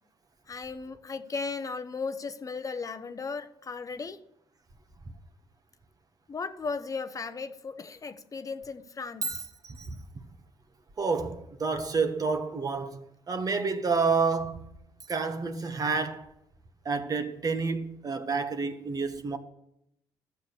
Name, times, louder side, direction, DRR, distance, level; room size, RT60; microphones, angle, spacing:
voice 1, 0.5-4.2 6.3-9.5, left 4 dB, 35° left, 0.9 m, -36 dB
voice 2, 9.2-10.0 11.0-14.7 15.1-16.3 16.8-19.4, right 4 dB, 40° right, 1.5 m, -29 dB
12.5 x 7.1 x 6.4 m
supercardioid pair, 70°, 10 cm